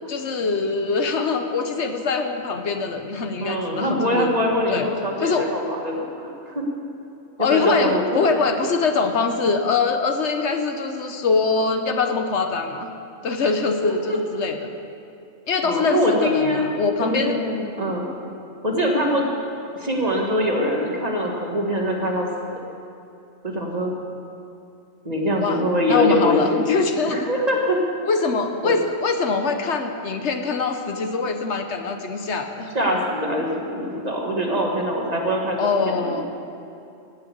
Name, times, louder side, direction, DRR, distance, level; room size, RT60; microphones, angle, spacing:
voice 1, 0.1-4.3 4.7-4.9 5.2-5.5 7.4-12.9 13.2-14.7 15.5-17.4 25.4-25.6 25.9-27.3 28.0-32.7 35.6-36.2, left 4 dB, 65° left, 6 dB, 1.1 m, -23 dB
voice 2, 3.4-6.6 7.4-8.3 13.8-14.2 15.6-16.7 17.0-18.1 18.6-19.3 19.7-22.3 23.4-23.9 25.0-26.6 27.1-27.8 28.6-28.8 32.7-36.2, equal, 35° right, 0 dB, 1.7 m, -23 dB
16.5 x 6.5 x 8.5 m, 2.7 s
omnidirectional pair, 1.3 m